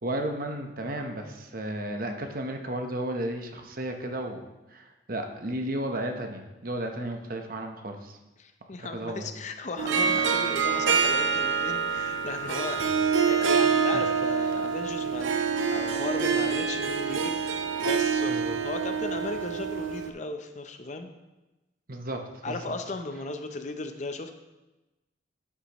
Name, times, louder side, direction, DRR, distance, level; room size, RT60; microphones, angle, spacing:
voice 1, 0.0-4.4 4.7-8.2 8.8-9.3 13.9-14.0 18.3-18.6 21.9-22.2 22.5-22.6, right 1 dB, 45° right, 4 dB, 1.0 m, -33 dB
voice 2, 8.4-12.8 13.3-21.1 22.4-24.3, left 3 dB, 40° left, 7 dB, 0.6 m, -36 dB
Harp, 9.8-20.1, right 6 dB, 85° right, 0.7 m, -26 dB
11.5 x 8.3 x 3.0 m, 1.1 s
head